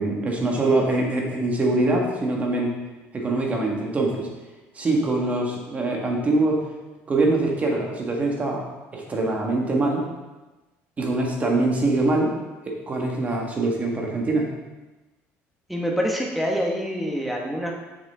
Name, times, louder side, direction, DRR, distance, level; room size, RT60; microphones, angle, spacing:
voice 1, 0.0-2.7 3.1-4.3 4.8-6.7 7.1-8.6 8.9-10.1 11.0-12.4 12.6-14.5, right 2 dB, 25° right, 0 dB, 1.8 m, -23 dB
voice 2, 15.7-17.7, equal, ahead, -1 dB, 1.4 m, -26 dB
7.2 x 6.6 x 3.8 m, 1.1 s
cardioid pair, 120°, 5 cm